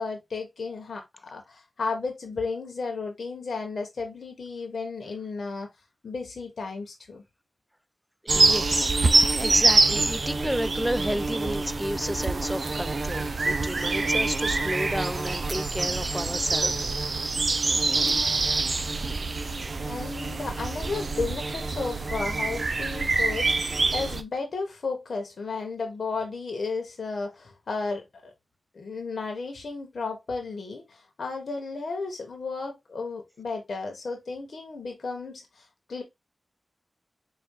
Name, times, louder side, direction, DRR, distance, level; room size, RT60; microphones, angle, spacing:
voice 1, 0.0-5.7 6.0-7.2 19.8-28.3 28.7-36.0, left 4 dB, 75° left, 1.0 m, -33 dB
voice 2, 8.2-16.9, equal, 5° right, 0.4 m, -31 dB
sound 1, 8.3-24.2, right 3 dB, 60° right, 0.5 m, -25 dB
4.1 x 2.3 x 3.5 m
cardioid pair, 45°, 0 cm